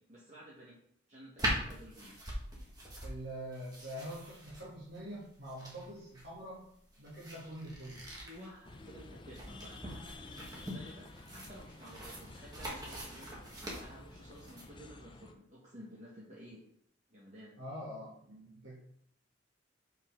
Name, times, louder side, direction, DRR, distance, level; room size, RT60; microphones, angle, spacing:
voice 1, 0.0-2.2 8.0-16.6 17.1-17.6, equal, 40° right, -6 dB, 1.5 m, -53 dB
sound 1, 1.4-14.7, equal, 20° right, 1.7 m, -42 dB
voice 2, 3.0-6.6 7.0-8.0 17.6-18.8, equal, 60° right, -7 dB, 2.4 m, -45 dB
sound 2, 8.6-15.3, left 2 dB, 25° left, 0.5 m, -52 dB
6.8 x 5.5 x 3.8 m, 0.67 s
head